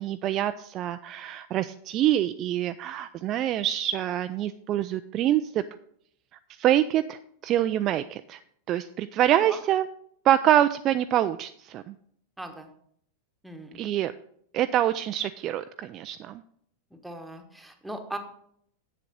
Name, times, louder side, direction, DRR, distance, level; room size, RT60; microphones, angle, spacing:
voice 1, 0.0-5.6 6.6-8.4 8.7-9.9 10.2-12.0 13.7-14.1 14.5-16.4, right 12 dB, 35° right, 11 dB, 0.3 m, -25 dB
voice 2, 12.4-12.7 13.4-13.8 16.9-18.2, right 1 dB, 5° right, 5 dB, 1.2 m, -39 dB
7.7 x 7.5 x 5.2 m, 0.68 s
figure-of-eight pair, 90°, 0 cm